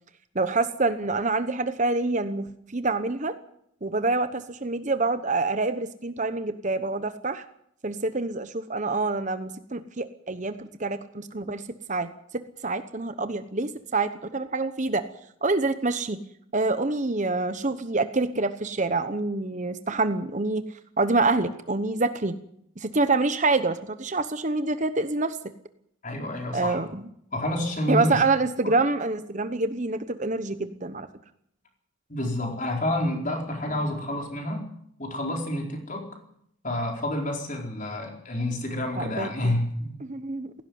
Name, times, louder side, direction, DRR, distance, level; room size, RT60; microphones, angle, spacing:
voice 1, 0.3-2.5 2.7-3.4 3.8-7.4 7.8-11.6 11.9-12.1 12.3-15.0 15.4-16.2 16.5-20.6 21.0-22.3 22.8-25.4 26.5-27.0 27.9-31.1 38.9-39.5 40.0-40.5, right 3 dB, 35° right, 11 dB, 1.0 m, -26 dB
voice 2, 26.0-26.8 27.3-28.2 32.1-34.6 35.0-36.1 36.6-40.0, left 1 dB, 35° left, 2 dB, 4.4 m, -29 dB
17.0 x 16.5 x 9.4 m, 0.72 s
head